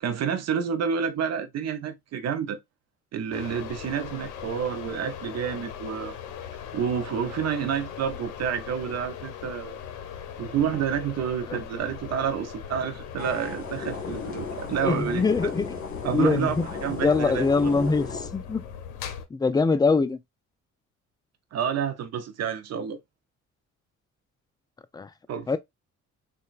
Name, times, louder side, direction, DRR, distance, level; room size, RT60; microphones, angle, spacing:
voice 1, 0.0-2.6 3.1-6.1 6.7-9.7 10.4-15.5 16.0-16.6 16.8-17.7 21.5-23.0 25.3-25.6, right 8 dB, 60° right, 0.5 m, -29 dB
sound 1, 3.3-19.3, left 8 dB, 85° left, 0.6 m, -40 dB
sound 2, 13.2-18.3, left 5 dB, 45° left, 1.4 m, -35 dB
voice 2, 14.8-15.7 16.1-16.6 17.0-18.6 19.3-20.2 24.9-25.1 25.5-25.6, left 4 dB, 15° left, 0.3 m, -23 dB
3.8 x 2.2 x 2.4 m
cardioid pair, 90°, 30 cm